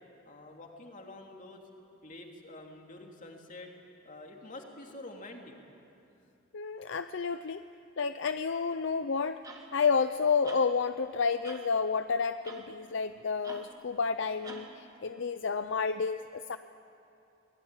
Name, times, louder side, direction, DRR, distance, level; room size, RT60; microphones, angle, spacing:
voice 1, 0.2-1.6 2.0-3.7 4.0-5.6, left 2 dB, 40° left, 1 dB, 2.9 m, -47 dB
voice 2, 6.5-7.6 8.0-9.4 9.7-16.6, left 5 dB, 65° left, 11 dB, 0.6 m, -30 dB
sound 1, 9.4-9.7 10.4-10.7 11.4-11.7 12.4-12.7 13.4-13.7 14.4-14.7 15.4-15.5, right 2 dB, 20° right, 2.2 m, -46 dB
24.0 x 20.0 x 9.8 m, 2.7 s
head